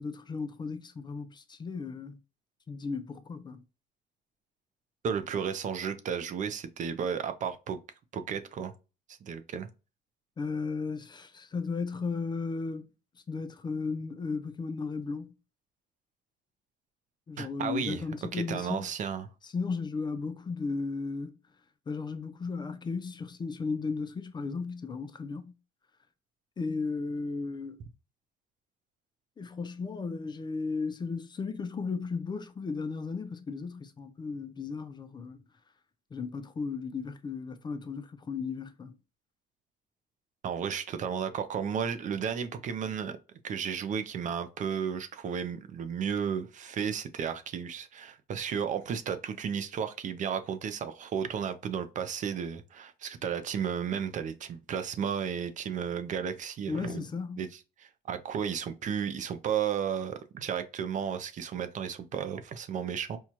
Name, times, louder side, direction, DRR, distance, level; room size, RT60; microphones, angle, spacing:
voice 1, 0.0-2.2 2.7-3.6 10.4-12.9 13.3-15.3 17.3-18.9 19.4-21.4 21.9-25.5 26.6-27.8 29.4-35.4 36.1-38.9 56.7-57.4, left 4 dB, 25° left, 0.4 m, -35 dB
voice 2, 5.0-7.8 8.1-8.7 9.1-9.7 17.4-18.0 18.3-19.3 40.4-43.2 43.4-57.0 57.4-63.2, right 7 dB, 50° right, 0.5 m, -33 dB
4.4 x 2.3 x 2.8 m
cardioid pair, 110°, 17 cm